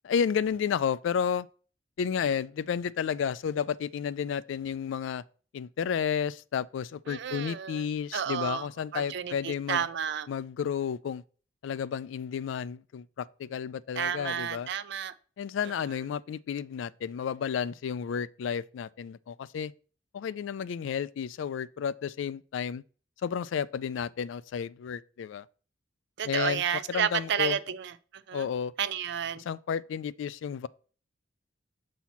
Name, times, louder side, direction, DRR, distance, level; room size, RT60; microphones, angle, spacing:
voice 1, 0.0-1.5 2.0-5.2 5.5-9.9 10.3-11.2 11.6-14.7 15.4-19.7 20.1-22.8 23.2-25.5 26.2-27.6 28.3-28.7 29.4-30.7, left 7 dB, 80° left, 0.3 m, -32 dB
voice 2, 7.1-7.8 8.1-8.7 8.9-10.3 14.0-15.1 26.2-27.9 28.3-28.4 28.8-29.4, right 8 dB, 65° right, 0.4 m, -31 dB
7.1 x 2.8 x 5.8 m
head